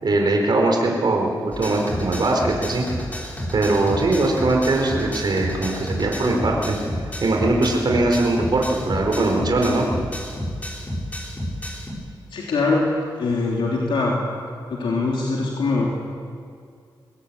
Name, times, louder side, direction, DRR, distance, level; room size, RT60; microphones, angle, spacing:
voice 1, 0.0-2.8 3.5-6.7 7.2-9.9, right 2 dB, 55° right, 1 dB, 4.5 m, -21 dB
sound 1, 1.5-11.9, equal, 15° left, 6.0 m, -31 dB
voice 2, 12.3-12.9 13.2-14.1 14.7-15.9, left 3 dB, 85° left, -3 dB, 3.7 m, -22 dB
22.5 x 17.5 x 8.8 m, 2.2 s
cardioid pair, 60°, 9 cm